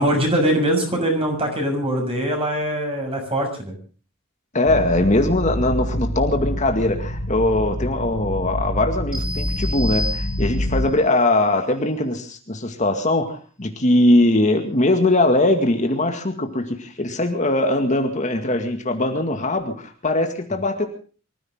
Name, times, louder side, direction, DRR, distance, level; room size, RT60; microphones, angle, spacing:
voice 1, 0.0-3.7, right 1 dB, 30° right, 2 dB, 6.5 m, -22 dB
voice 2, 4.5-20.9, left 1 dB, 40° left, 5 dB, 2.1 m, -21 dB
sound 1, 4.6-10.9, equal, 75° left, 2.4 m, -26 dB
sound 2, 9.1-10.8, left 2 dB, 5° right, 5.7 m, -31 dB
24.5 x 15.0 x 3.7 m, 0.38 s
head